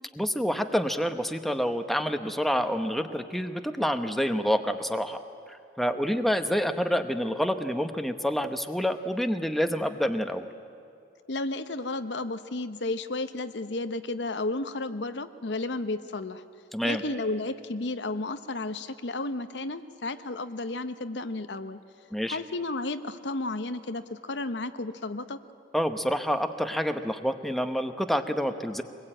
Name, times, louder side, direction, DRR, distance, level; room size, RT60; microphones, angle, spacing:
voice 1, 0.1-5.2 5.5-10.5 16.7-17.0 22.1-22.4 25.7-28.8, equal, ahead, 7 dB, 0.9 m, -28 dB
voice 2, 11.3-16.4 16.8-21.8 22.3-25.4, left 2 dB, 70° left, 10 dB, 0.9 m, -32 dB
24.0 x 21.0 x 8.9 m, 2.3 s
head